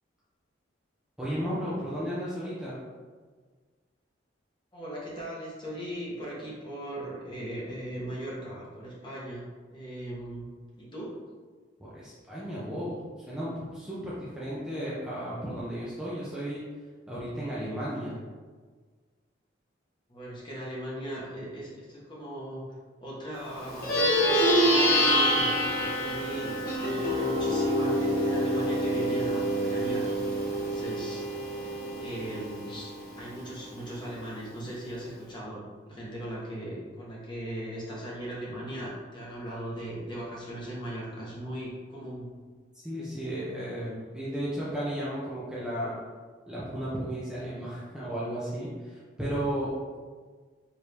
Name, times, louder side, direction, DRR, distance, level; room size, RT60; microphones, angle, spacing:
voice 1, 1.2-2.8 11.8-13.0 13.3-16.6 17.1-18.2 42.7-45.9 46.5-49.7, equal, 5° right, -9 dB, 0.6 m, -34 dB
voice 2, 4.7-10.4 10.8-11.1 20.1-22.6 23.0-30.1 30.6-31.7 32.0-42.3, right 1 dB, 25° left, -5 dB, 1.0 m, -38 dB
Plucked string instrument, 23.7-33.4, equal, 50° left, 1.1 m, -26 dB
4.6 x 2.7 x 3.3 m, 1.5 s
head